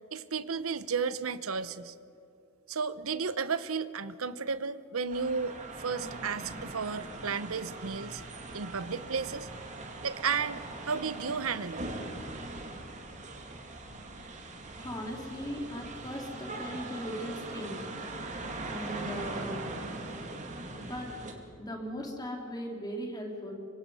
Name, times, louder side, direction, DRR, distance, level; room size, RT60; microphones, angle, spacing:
voice 1, 0.1-1.9 2.7-8.2 8.5-9.5 10.0-11.8, right 5 dB, 80° right, 14 dB, 0.9 m, -33 dB
sound 1, 5.1-21.3, right 2 dB, 35° right, 2.5 m, -41 dB
voice 2, 14.8-17.8 18.7-19.7 20.8-21.1 21.6-23.5, equal, 20° left, 1 dB, 3.4 m, -38 dB
25.0 x 24.5 x 5.6 m, 2.7 s
head